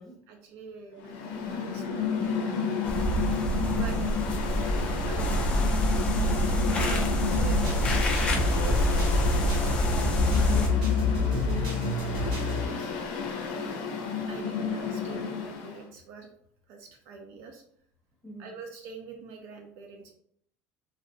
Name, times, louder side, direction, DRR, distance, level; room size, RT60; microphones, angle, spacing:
voice 1, 0.3-2.7 3.7-4.1 5.1-5.9 6.7-7.9 8.2-10.1 10.4-10.8 11.1-13.1 14.3-16.3 16.7-17.6 18.4-20.1, right 5 dB, 50° right, 3 dB, 0.3 m, -45 dB
Mechanical fan, 1.0-15.8, left 6 dB, 80° left, 0.5 m, -32 dB
sound 1, 2.8-10.7, right 1 dB, 20° left, 0.4 m, -27 dB
voice 2, 3.4-4.7 13.5-13.9 18.2-18.6, right 1 dB, 5° left, -5 dB, 0.7 m, -48 dB
sound 2, 7.3-12.7, left 4 dB, 80° right, 0.9 m, -28 dB
2.6 x 2.0 x 2.5 m, 0.65 s
cardioid pair, 170°, 6 cm